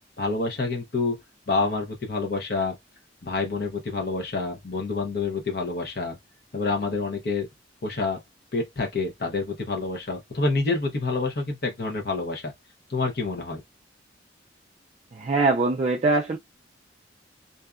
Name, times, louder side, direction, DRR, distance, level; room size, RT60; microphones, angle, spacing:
voice 1, 0.2-1.2 1.5-2.8 3.2-6.2 6.5-7.5 7.8-8.2 8.5-12.5 12.9-13.6, left 3 dB, 55° left, 0.8 m, -27 dB
voice 2, 15.2-16.4, right 3 dB, 35° right, 0.3 m, -22 dB
2.6 x 2.2 x 2.4 m
head